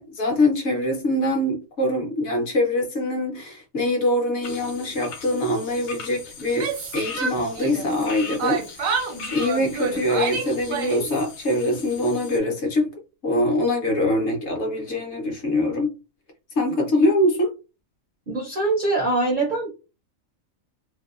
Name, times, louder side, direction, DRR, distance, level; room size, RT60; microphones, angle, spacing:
voice 1, 0.0-8.9 9.3-12.9 13.2-15.9 16.6-17.5, left 1 dB, 60° left, 0.9 m, -23 dB
sound 1, 4.4-12.4, left 4 dB, 85° left, 1.1 m, -40 dB
Yell, 6.4-8.1 8.4-11.2, right 5 dB, 80° right, 1.0 m, -28 dB
voice 2, 18.3-19.7, right 2 dB, 60° right, 0.5 m, -23 dB
2.7 x 2.1 x 2.3 m
omnidirectional pair, 1.4 m